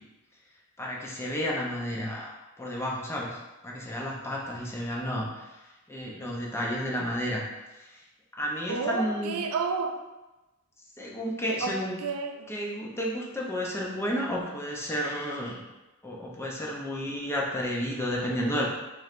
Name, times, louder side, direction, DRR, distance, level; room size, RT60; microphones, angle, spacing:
voice 1, 0.8-2.3 2.6-3.4 3.6-5.6 5.9-7.4 8.4-9.4 11.0-12.0 12.5-15.6 16.0-18.7, equal, 10° left, -3 dB, 0.6 m, -31 dB
voice 2, 8.7-10.0 11.6-12.5, right 4 dB, 75° right, 5 dB, 0.4 m, -31 dB
4.5 x 3.2 x 2.5 m, 1.1 s
head